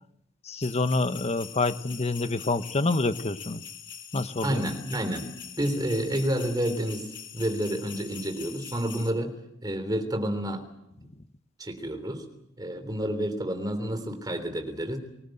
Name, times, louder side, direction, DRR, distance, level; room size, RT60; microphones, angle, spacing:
voice 1, 0.4-3.6 4.1-4.6, left 3 dB, 30° left, 11 dB, 1.0 m, -27 dB
sound 1, 0.6-9.1, left 8 dB, 60° left, 3.8 m, -43 dB
voice 2, 4.4-5.3 5.6-9.3 9.6-10.7 11.0-11.1 11.6-12.2 12.6-15.0, right 1 dB, 20° right, 7 dB, 3.5 m, -29 dB
24.5 x 20.0 x 7.9 m, 0.79 s
head